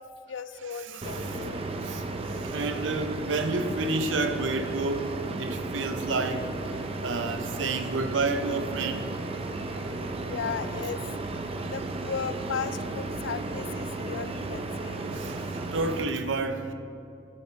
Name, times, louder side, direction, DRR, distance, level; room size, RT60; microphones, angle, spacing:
voice 1, 0.0-1.8 2.1-2.3 5.2-5.7 9.8-11.3 11.7-15.0, left 6 dB, 75° left, 0.4 m, -37 dB
voice 2, 0.8-1.4 1.8-6.5 6.9-9.1 9.7-9.8 15.0-16.7, right 3 dB, 90° right, 0.7 m, -30 dB
sound 1, 1.0-16.0, right 2 dB, 30° right, 0.6 m, -34 dB
12.5 x 5.9 x 4.5 m
head